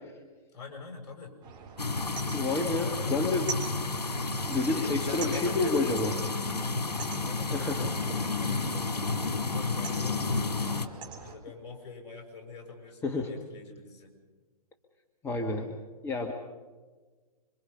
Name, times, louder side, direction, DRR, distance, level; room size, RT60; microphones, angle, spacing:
voice 1, 0.5-1.3 2.3-4.0 4.6-6.4 7.2-10.5 11.2-14.1, left 4 dB, 45° left, 2 dB, 6.5 m, -44 dB
sound 1, 1.4-11.3, right 5 dB, 20° right, 3.7 m, -44 dB
sound 2, 1.8-10.9, left 3 dB, 85° left, 1.7 m, -31 dB
voice 2, 2.3-3.5 4.5-6.1 7.5-8.2 13.0-13.3 15.2-15.7 16.0-16.3, left 3 dB, 10° left, 2 dB, 1.4 m, -29 dB
26.5 x 24.5 x 5.5 m, 1.4 s
hypercardioid pair, 130°, 20 cm